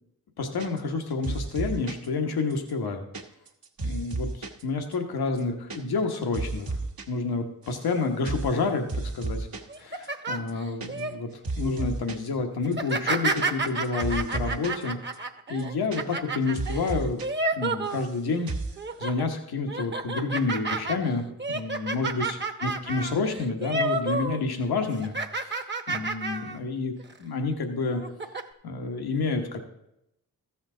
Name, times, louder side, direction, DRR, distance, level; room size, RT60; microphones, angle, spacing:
voice 1, 0.4-3.1 3.8-6.8 7.1-9.5 9.8-11.3 11.6-15.0 15.5-17.2 17.6-18.5 19.0-26.9 27.2-28.0 28.6-29.6, left 3 dB, 85° left, 4 dB, 1.2 m, -29 dB
sound 1, 0.6-1.0 1.2-2.1 2.5-4.6 4.9-5.0 5.3-5.8 6.0-7.1 7.3-7.9 8.3-8.6 8.9-9.8 10.0-10.1 10.4-11.2 11.4-12.3 12.7-14.8 15.1-15.2 15.5-16.3 16.6-17.3 17.5-18.2 18.5-18.8, right 3 dB, 70° right, 1.2 m, -33 dB
sound 2, 9.7-11.1 11.6-11.9 12.7-18.4 18.8-19.2 19.7-24.4 24.7-26.6 27.0-27.2 27.9-28.4, right 3 dB, 30° right, 0.9 m, -31 dB
14.0 x 7.2 x 3.8 m, 0.83 s
cardioid pair, 60°, 37 cm